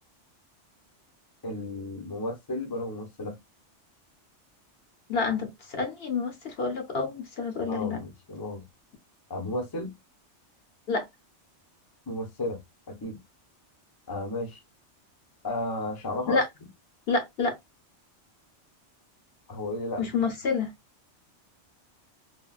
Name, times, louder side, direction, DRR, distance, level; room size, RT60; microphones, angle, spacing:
voice 1, 1.4-3.4 7.7-8.6 9.3-9.9 12.1-12.6 12.9-13.2 14.1-14.6 15.4-16.4 19.5-20.3, left 1 dB, 25° left, 0.6 m, -33 dB
voice 2, 5.1-8.0 10.9-11.1 16.3-16.5 17.1-17.6 20.0-20.7, left 4 dB, 60° left, 1.0 m, -28 dB
3.5 x 2.2 x 2.3 m
omnidirectional pair, 1.2 m